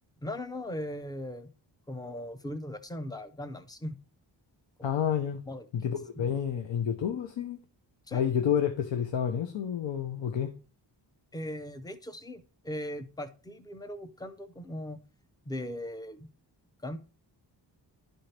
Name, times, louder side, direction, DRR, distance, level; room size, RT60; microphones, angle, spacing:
voice 1, 0.2-1.5 1.9-4.0 4.8-4.9 5.5-5.6 6.2-6.3 8.1-8.2 11.3-15.0 15.5-16.3 16.8-17.0, left 1 dB, 10° left, 0.5 m, -39 dB
voice 2, 4.8-5.4 5.7-7.6 8.1-10.5, left 8 dB, 75° left, 0.8 m, -29 dB
11.5 x 4.4 x 3.3 m
wide cardioid pair, 175°, 44 cm